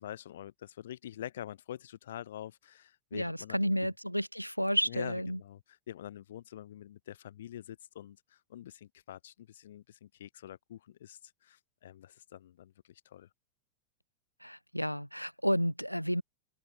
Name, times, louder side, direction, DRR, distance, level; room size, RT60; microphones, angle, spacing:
voice 1, 0.0-3.9 4.9-13.3, left 11 dB, 60° left, 2.6 m, -46 dB
voice 2, 3.1-5.4 14.4-16.2, equal, 90° left, 2.9 m, -31 dB
open air
figure-of-eight pair, 90°, 0 cm